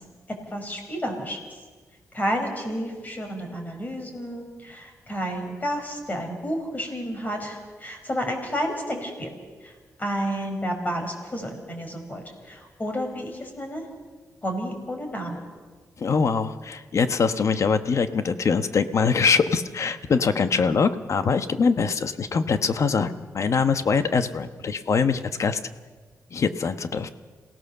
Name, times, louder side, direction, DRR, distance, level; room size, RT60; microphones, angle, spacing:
voice 1, 0.5-1.4 2.1-9.3 9.6-13.8 14.4-15.4, equal, 30° left, 4 dB, 5.2 m, -31 dB
voice 2, 16.0-25.6 26.3-27.1, left 5 dB, 55° left, 10 dB, 1.1 m, -23 dB
27.5 x 17.0 x 6.9 m, 1.4 s
cardioid pair, 100°, 6 cm